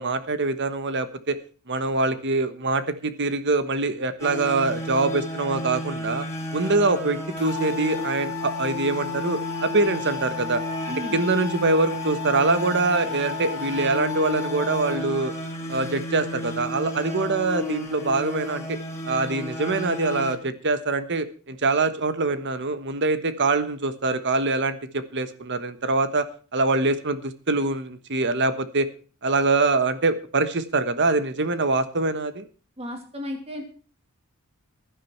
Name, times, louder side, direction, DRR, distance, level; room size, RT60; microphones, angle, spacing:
voice 1, 0.0-1.4 1.7-6.3 6.5-10.6 11.1-15.3 15.7-18.8 19.0-28.9 29.2-32.5, right 3 dB, 55° right, 12 dB, 1.3 m, -24 dB
sound 1, 4.2-20.3, equal, 15° left, 3.9 m, -33 dB
sound 2, 7.4-15.0, left 8 dB, 75° left, 1.9 m, -34 dB
voice 2, 10.9-11.2 32.8-33.6, equal, 25° right, 4 dB, 2.7 m, -34 dB
16.0 x 11.5 x 4.5 m, 0.38 s
head